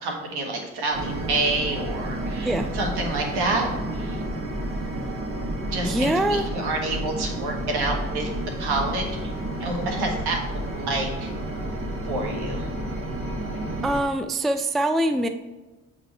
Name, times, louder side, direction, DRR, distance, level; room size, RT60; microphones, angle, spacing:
voice 1, 0.0-4.2 5.7-8.3 8.6-9.1 9.6-11.3 12.0-12.7, right 2 dB, 70° right, 1 dB, 1.6 m, -28 dB
sound 1, 0.9-14.0, right 1 dB, 30° right, 1.5 m, -31 dB
voice 2, 5.8-6.5 13.8-15.3, right 1 dB, ahead, 9 dB, 0.4 m, -23 dB
7.0 x 4.2 x 4.5 m, 1.1 s
hypercardioid pair, 45°, 41 cm